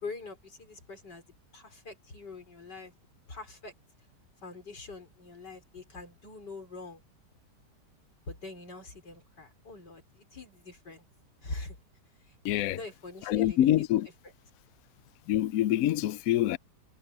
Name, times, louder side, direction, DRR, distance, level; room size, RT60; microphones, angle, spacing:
voice 1, 0.0-1.2 1.5-2.9 3.3-3.7 4.4-7.0 8.3-11.0 11.4-11.8 12.6-13.9 14.2-14.3, left 3 dB, 90° left, 5.7 m, -44 dB
voice 2, 12.4-12.8 13.3-14.1 15.3-16.6, left 13 dB, 70° left, 0.9 m, -25 dB
omnidirectional pair, 1.8 m